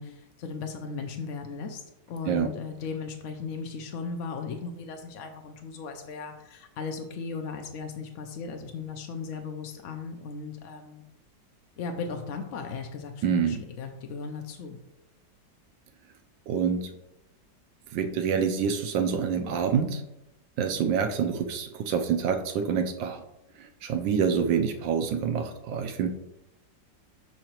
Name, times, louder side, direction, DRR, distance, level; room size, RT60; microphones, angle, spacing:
voice 1, 0.0-1.8 2.1-11.0 11.8-14.8, left 5 dB, 75° left, 4 dB, 0.7 m, -37 dB
voice 2, 13.2-13.6 16.5-16.9 17.9-20.0 20.6-23.2 23.6-26.1, right 7 dB, 85° right, 6 dB, 1.3 m, -27 dB
6.4 x 5.8 x 2.9 m, 0.89 s
omnidirectional pair, 1.9 m